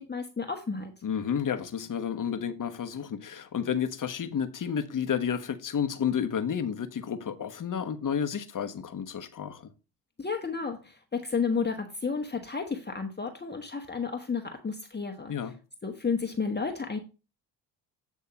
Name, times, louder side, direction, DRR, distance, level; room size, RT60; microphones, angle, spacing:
voice 1, 0.0-0.9 10.2-15.5 15.8-17.0, left 5 dB, 20° left, 1.2 m, -32 dB
voice 2, 1.0-9.7 15.3-15.5, left 8 dB, 40° left, 1.1 m, -31 dB
8.5 x 3.6 x 5.7 m
hypercardioid pair, 50°, 47 cm